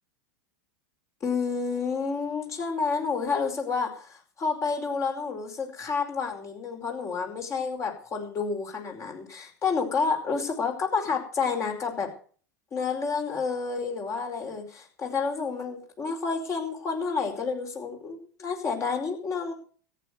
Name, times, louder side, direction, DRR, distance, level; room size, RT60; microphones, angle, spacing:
voice 1, 1.2-12.1 12.7-19.5, left 5 dB, 30° left, 3 dB, 4.8 m, -29 dB
14.0 x 9.7 x 6.6 m, 0.43 s
hypercardioid pair, 90°, 10 cm